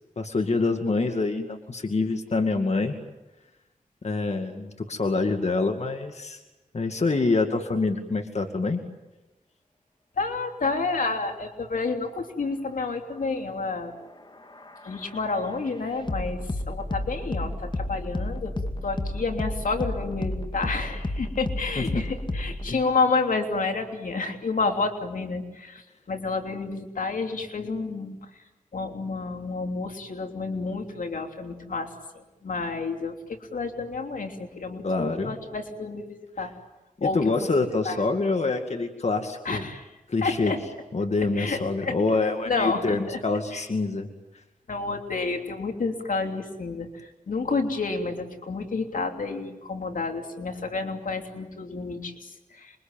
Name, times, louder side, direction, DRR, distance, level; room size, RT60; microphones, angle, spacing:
voice 1, 0.2-2.9 4.0-6.4 6.7-8.8 21.8-22.0 22.7-22.8 34.8-35.4 37.0-39.7 40.1-40.5 40.9-44.1, left 3 dB, 55° left, 5 dB, 2.3 m, -26 dB
voice 2, 10.2-13.9 14.8-16.4 16.7-18.5 18.8-28.2 28.7-36.5 37.0-37.3 37.8-38.0 39.4-39.9 40.2-40.6 41.4-41.9 42.5-43.2 43.5-43.6 44.7-52.7, left 3 dB, 80° left, 4 dB, 3.2 m, -30 dB
sound 1, 14.0-22.7, left 1 dB, 35° left, 2.3 m, -32 dB
27.5 x 23.5 x 9.1 m, 1.1 s
wide cardioid pair, 65°, 14 cm